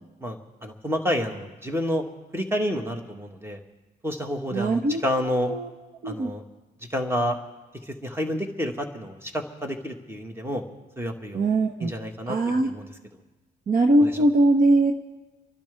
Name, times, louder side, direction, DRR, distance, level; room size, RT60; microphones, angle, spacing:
voice 1, 0.2-2.0 2.3-3.6 4.0-5.5 6.0-6.4 6.9-7.4 7.9-10.6 11.0-11.5 11.8-12.9 14.0-14.1, equal, 10° right, 4 dB, 1.8 m, -29 dB
voice 2, 4.5-5.0 5.5-5.7 6.0-6.3 11.3-11.9 12.3-12.7 13.7-14.9, right 2 dB, 45° right, 4 dB, 1.1 m, -21 dB
29.0 x 11.5 x 3.5 m, 1.2 s
cardioid pair, 90°, 20 cm